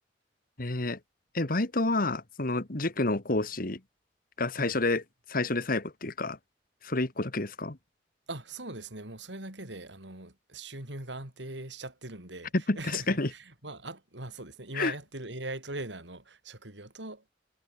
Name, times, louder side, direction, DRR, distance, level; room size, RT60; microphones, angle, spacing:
voice 1, 0.6-1.0 1.3-3.8 4.4-5.0 5.3-6.4 6.8-7.8 12.5-13.3 14.7-14.9, left 2 dB, 55° left, 2.0 m, -29 dB
voice 2, 8.3-17.2, right 2 dB, 90° right, 5.9 m, -41 dB
head